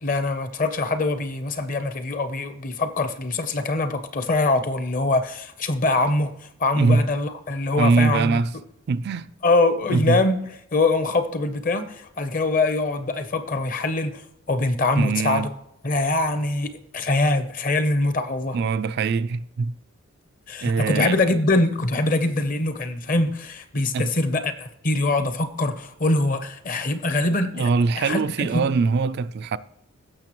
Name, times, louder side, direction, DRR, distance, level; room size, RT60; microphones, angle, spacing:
voice 1, 0.0-8.4 9.4-10.4 10.7-14.2 14.5-15.5 15.8-18.6 20.5-27.7 28.0-28.7, left 2 dB, 35° left, 0.7 m, -23 dB
voice 2, 7.8-8.5 8.9-9.3 9.9-10.2 15.0-15.5 18.5-19.7 20.6-21.2 23.9-24.1 27.5-29.6, right 4 dB, 45° right, 0.3 m, -22 dB
16.0 x 6.5 x 3.0 m
head